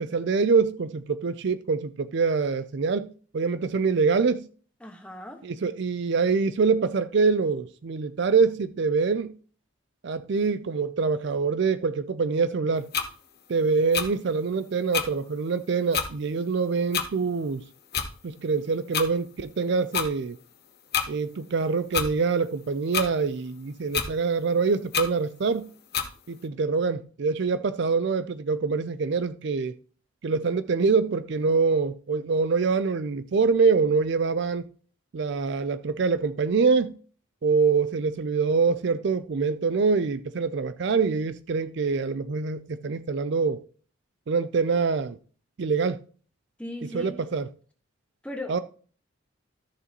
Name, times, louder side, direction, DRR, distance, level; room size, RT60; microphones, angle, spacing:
voice 1, 0.0-4.5 5.4-9.3 10.0-12.9 13.5-17.6 18.2-20.4 21.1-25.7 26.3-29.8 30.2-34.7 35.1-37.0 37.4-43.6 44.3-45.2 45.6-46.0 46.8-47.5 48.5-48.6, right 4 dB, 55° right, 0.4 m, -25 dB
voice 2, 4.8-5.4 46.6-47.1 48.2-48.6, left 1 dB, 5° left, 1.3 m, -37 dB
sound 1, 12.9-13.1 13.9-14.1 14.9-15.1 15.9-16.1 16.9-17.1 17.9-18.1 18.9-19.1 19.9-20.1 20.9-21.1 21.9-22.1 22.9-23.1 23.9-24.1 24.9-25.1 25.9-26.1, left 7 dB, 50° left, 1.0 m, -26 dB
13.5 x 6.8 x 3.0 m
head